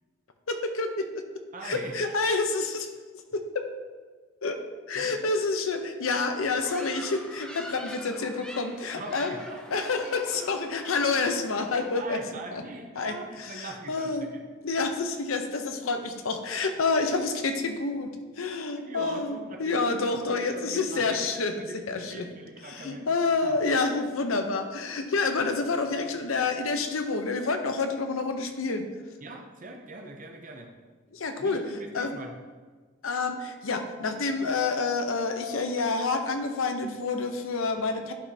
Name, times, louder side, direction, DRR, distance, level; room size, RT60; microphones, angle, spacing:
voice 1, 0.5-1.2 1.6-2.9 3.3-3.7 4.4-4.6 4.9-9.3 9.7-12.2 12.5-12.6 13.0-14.3 14.6-21.5 21.9-22.3 22.7-28.8 31.1-32.2 33.0-38.1, left 3 dB, 80° left, 6 dB, 0.7 m, -28 dB
voice 2, 1.5-2.4 4.9-5.3 8.9-10.8 11.7-14.4 18.7-23.1 23.4-23.6 29.2-30.7 31.4-32.3, right 2 dB, 40° right, 3 dB, 0.6 m, -42 dB
sound 1, 6.6-12.0, equal, 5° left, 0.5 m, -45 dB
11.0 x 5.1 x 2.8 m, 1.4 s
head